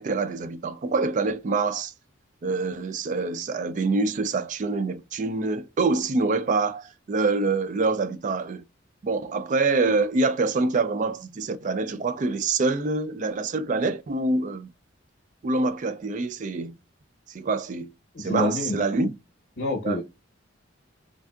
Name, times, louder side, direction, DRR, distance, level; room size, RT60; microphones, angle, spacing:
voice 1, 0.0-1.9 2.4-8.6 9.0-14.7 15.4-16.8 17.3-17.9 18.2-19.1 19.8-20.0, right 3 dB, 40° right, 0.3 m, -25 dB
voice 2, 18.1-18.8 19.6-20.0, left 1 dB, 70° left, 0.8 m, -27 dB
3.4 x 2.6 x 2.3 m
head